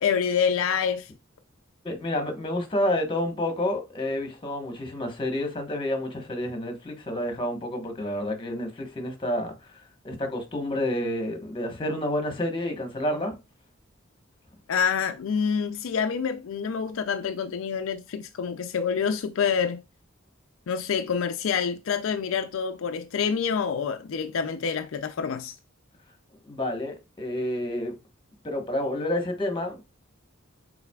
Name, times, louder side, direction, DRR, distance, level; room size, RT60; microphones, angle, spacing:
voice 1, 0.0-1.1 14.7-19.8 20.7-25.5, left 6 dB, 70° left, 0.4 m, -27 dB
voice 2, 1.8-9.5 10.0-13.3 26.4-27.9 28.4-29.8, left 1 dB, 25° left, 1.1 m, -29 dB
5.6 x 3.9 x 2.3 m
head